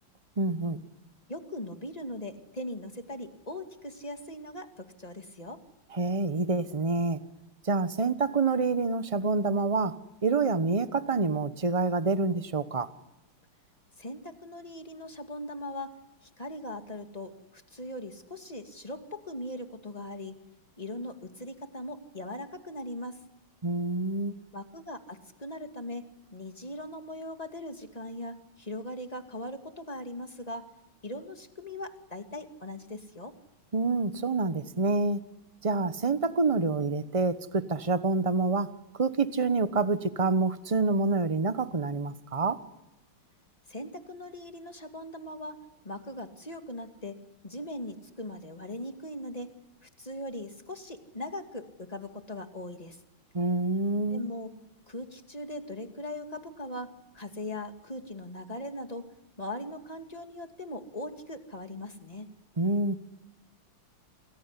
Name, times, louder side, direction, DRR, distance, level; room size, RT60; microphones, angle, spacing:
voice 1, 0.4-0.8 5.9-7.2 7.6-12.9 23.6-24.3 33.7-35.2 35.6-42.6 53.3-54.3 62.6-62.9, right 3 dB, 25° right, 0.7 m, -27 dB
voice 2, 1.3-5.6 14.0-15.9 16.2-20.3 20.8-23.2 24.5-30.7 31.0-33.4 43.7-45.6 45.8-47.2 47.4-49.5 49.8-53.0 54.1-54.5 54.9-59.1 59.4-62.3, left 1 dB, 20° left, 2.3 m, -40 dB
28.5 x 20.5 x 9.8 m
omnidirectional pair, 2.3 m